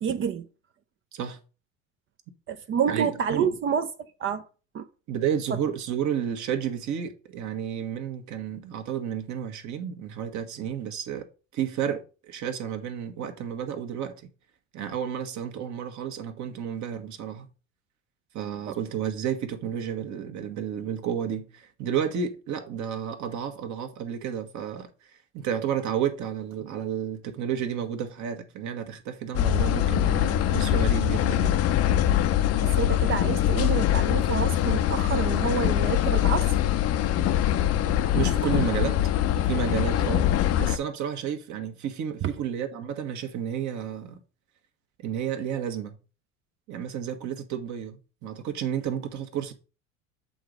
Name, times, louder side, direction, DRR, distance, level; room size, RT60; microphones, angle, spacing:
voice 1, 0.0-0.5 2.5-4.5 4.7-4.9 5.5-5.6 18.7-18.8 32.6-36.5 42.2-42.3, right 7 dB, 30° right, 0.7 m, -28 dB
voice 2, 2.9-3.5 5.1-11.3 11.5-14.1 14.7-17.4 18.3-31.6 38.1-39.0 39.5-40.3 40.6-44.2 45.0-46.0 46.7-49.5, right 8 dB, 45° right, 1.4 m, -31 dB
sound 1, 29.3-40.8, left 11 dB, 40° left, 0.7 m, -23 dB
7.7 x 3.9 x 5.1 m
hypercardioid pair, 80°, 39 cm